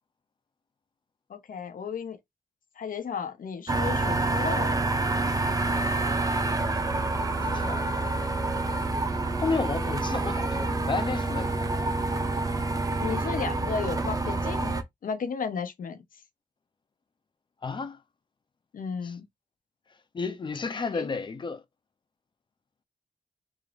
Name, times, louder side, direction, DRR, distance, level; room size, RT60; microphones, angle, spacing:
voice 1, 1.3-2.2 2.8-4.7 7.3-7.7 8.1-8.2 13.0-14.7 15.0-16.0 18.7-19.3 20.9-21.1, left 6 dB, 70° left, 0.7 m, -34 dB
sound 1, 3.7-14.8, right 2 dB, 25° right, 0.5 m, -27 dB
voice 2, 5.7-7.9 9.4-12.1 17.6-18.0 19.0-19.1 20.1-21.6, left 4 dB, 35° left, 0.5 m, -33 dB
3.6 x 2.5 x 3.3 m
wide cardioid pair, 180°, 15 cm